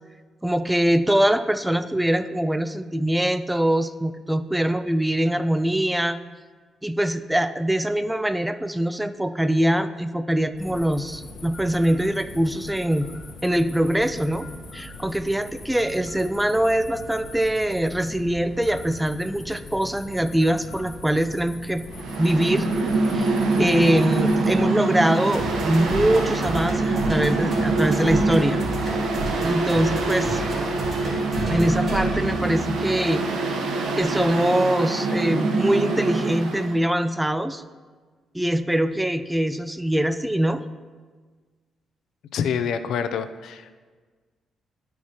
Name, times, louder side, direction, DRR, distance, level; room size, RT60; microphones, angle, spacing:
voice 1, 0.4-6.2 6.8-13.1 13.4-14.5 14.7-21.8 22.2-22.7 23.1-28.6 29.4-30.4 31.4-33.2 33.9-37.6 38.3-40.6, right 1 dB, 5° right, 11 dB, 0.4 m, -23 dB
sound 1, 10.5-24.6, left 2 dB, 50° left, 1.0 m, -41 dB
Mechanical fan, 21.9-36.7, right 3 dB, 75° right, 0.9 m, -24 dB
sound 2, 24.5-33.1, right 1 dB, 45° right, 2.3 m, -33 dB
voice 2, 42.3-43.7, left 7 dB, 75° left, 10 dB, 0.4 m, -26 dB
12.0 x 4.6 x 2.9 m, 1.5 s
cardioid pair, 75°, 0 cm